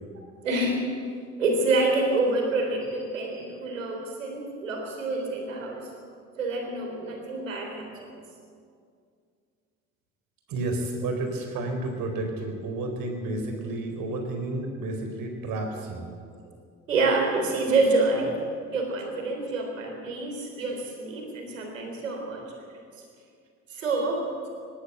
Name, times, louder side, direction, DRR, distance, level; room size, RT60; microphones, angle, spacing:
voice 1, 0.4-0.8 1.4-5.8 6.4-8.1 16.9-18.4 18.7-22.4 23.7-24.3, right 3 dB, 85° right, 2 dB, 3.6 m, -27 dB
voice 2, 10.5-16.1, right 2 dB, 60° right, 4 dB, 4.2 m, -31 dB
19.0 x 17.5 x 8.1 m, 2.2 s
hypercardioid pair, 55°, 38 cm